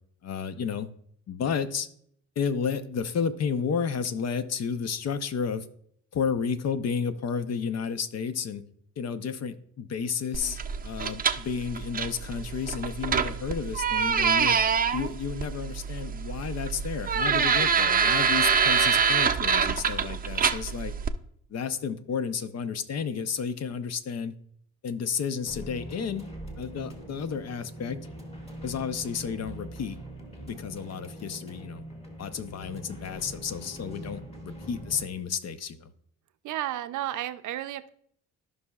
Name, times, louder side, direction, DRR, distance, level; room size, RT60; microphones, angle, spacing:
voice 1, 0.2-0.9 1.3-1.9 2.4-5.7 6.1-8.6 9.0-14.6 14.9-20.9 21.5-24.3 24.8-26.2 26.6-28.0 28.6-30.0 30.5-31.8 32.2-35.9, left 6 dB, 55° left, 11 dB, 0.8 m, -32 dB
sound 1, 10.3-21.1, right 6 dB, 30° right, 0.5 m, -25 dB
sound 2, 25.4-35.1, right 1 dB, 20° left, 2.0 m, -42 dB
voice 2, 36.4-37.9, right 13 dB, 75° right, 12 dB, 0.6 m, -32 dB
14.5 x 5.5 x 2.4 m, 0.66 s
cardioid pair, 90°, 30 cm